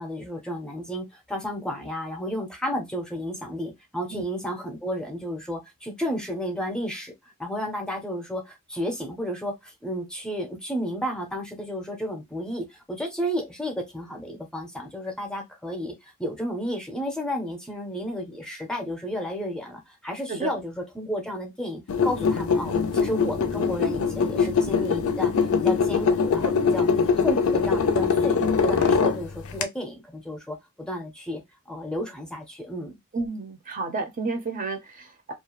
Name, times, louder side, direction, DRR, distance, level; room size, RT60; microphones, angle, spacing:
voice 1, 0.0-7.1 7.4-25.3 25.6-26.9 27.2-31.4 31.7-33.0, equal, 5° left, 0.6 m, -32 dB
voice 2, 20.3-20.6 33.1-35.3, right 3 dB, 40° right, 0.6 m, -31 dB
sound 1, 21.9-29.6, left 5 dB, 85° left, 0.5 m, -22 dB
2.4 x 2.0 x 2.9 m
head